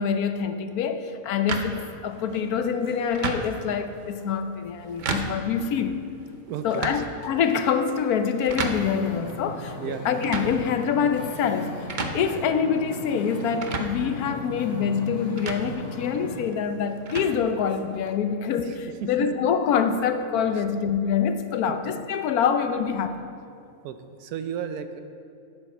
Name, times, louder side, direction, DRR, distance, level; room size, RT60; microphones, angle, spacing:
voice 1, 0.0-6.0 6.6-11.7 12.1-23.2, left 7 dB, 80° left, 8 dB, 1.2 m, -25 dB
sound 1, 1.5-18.1, right 3 dB, 45° right, 0.6 m, -36 dB
voice 2, 6.4-7.0 9.8-10.0 18.6-18.8 19.2-19.3 20.5-20.6 21.6-21.8 23.8-25.0, right 8 dB, 85° right, 9 dB, 1.2 m, -34 dB
Wind / Ocean, 8.5-16.4, left 2 dB, 50° left, 1.5 m, -38 dB
8.8 x 8.7 x 5.9 m, 2.5 s
omnidirectional pair, 1.6 m